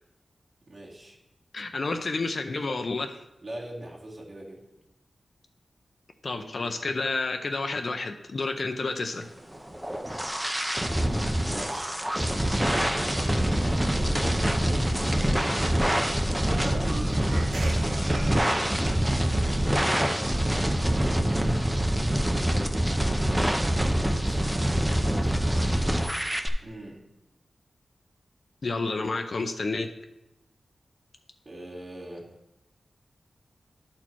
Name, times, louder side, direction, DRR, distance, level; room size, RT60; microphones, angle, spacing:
voice 1, 0.7-1.2 3.4-4.6 6.3-6.8 11.5-11.9 13.8-15.6 24.2-26.3 26.6-27.1 31.5-32.3, right 1 dB, 50° right, -9 dB, 2.0 m, -44 dB
voice 2, 1.5-3.2 6.2-9.3 28.6-29.9, left 3 dB, 55° left, 5 dB, 0.5 m, -30 dB
sound 1, 9.5-26.5, right 1 dB, 10° right, 0.6 m, -25 dB
sound 2, 16.4-19.3, right 2 dB, 75° right, 0.7 m, -37 dB
11.5 x 4.3 x 4.5 m, 0.90 s
wide cardioid pair, 110°, 0 cm